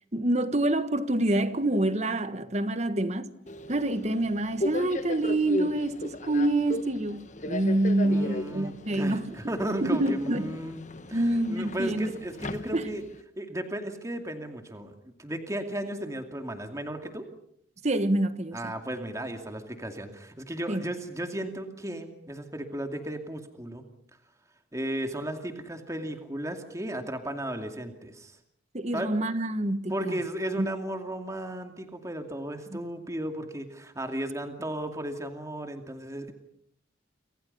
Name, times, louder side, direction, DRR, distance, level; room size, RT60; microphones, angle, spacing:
voice 1, 0.1-3.3 3.7-9.3 9.8-10.5 11.1-12.1 12.7-12.9 17.8-18.7 20.7-20.8 28.7-30.2 30.6-30.7 32.7-32.8, right 1 dB, 35° right, 1.5 m, -27 dB
Subway metro underground, 3.5-13.2, left 1 dB, 40° left, 1.4 m, -37 dB
voice 2, 8.0-10.8 11.1-13.0 13.4-17.3 18.5-23.8 24.7-28.4 28.9-29.1 29.9-36.3, right 1 dB, 15° right, 2.5 m, -35 dB
29.5 x 26.0 x 5.6 m
head